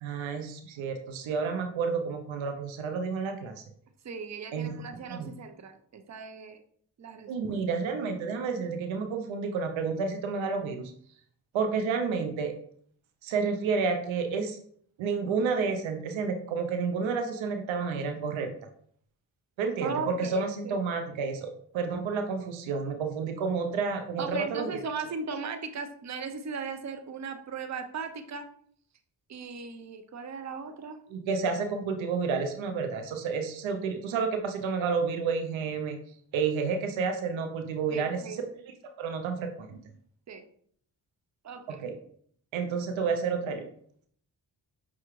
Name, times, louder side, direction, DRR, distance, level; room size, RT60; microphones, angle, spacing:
voice 1, 0.0-3.6 4.5-4.8 5.1-5.3 7.3-10.9 11.5-12.5 13.2-14.6 15.0-18.5 19.6-21.5 21.7-24.7 31.1-36.0 36.3-38.4 38.8-39.8 41.7-41.9 42.5-43.7, right 5 dB, 85° right, 5 dB, 0.6 m, -30 dB
voice 2, 4.0-6.6 7.0-7.6 19.8-20.8 24.2-28.5 29.3-31.0 37.9-38.4 40.3-40.4 41.4-41.8, right 5 dB, 35° right, 7 dB, 0.6 m, -37 dB
5.7 x 2.3 x 3.0 m, 0.62 s
supercardioid pair, 40°, 46 cm